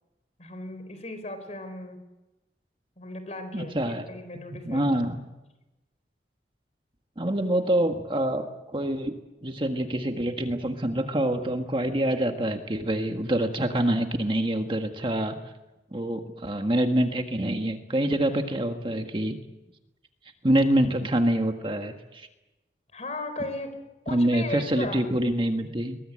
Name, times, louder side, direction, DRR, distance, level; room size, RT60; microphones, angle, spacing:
voice 1, 0.4-2.0 3.0-3.8 4.1-4.9 18.1-18.5 22.9-23.7 24.0-25.1, left 2 dB, 40° left, 9 dB, 4.2 m, -36 dB
voice 2, 3.5-4.1 4.6-5.2 7.2-9.1 9.4-15.4 15.9-19.4 20.4-22.3 24.1-26.0, right 1 dB, 30° right, 5 dB, 1.7 m, -26 dB
23.0 x 20.5 x 8.8 m, 1.0 s
head